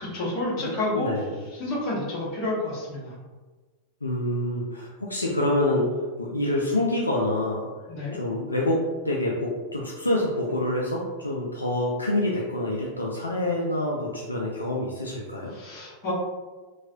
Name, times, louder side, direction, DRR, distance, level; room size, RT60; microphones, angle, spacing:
voice 1, 0.0-1.1 1.5-3.1 7.9-8.1 15.5-16.1, left 2 dB, 35° left, -7 dB, 1.2 m, -29 dB
voice 2, 0.6-1.4 4.0-7.7 8.1-15.5, left 1 dB, 80° left, -3 dB, 0.3 m, -27 dB
3.0 x 2.3 x 2.5 m, 1.3 s
figure-of-eight pair, 90°, 0 cm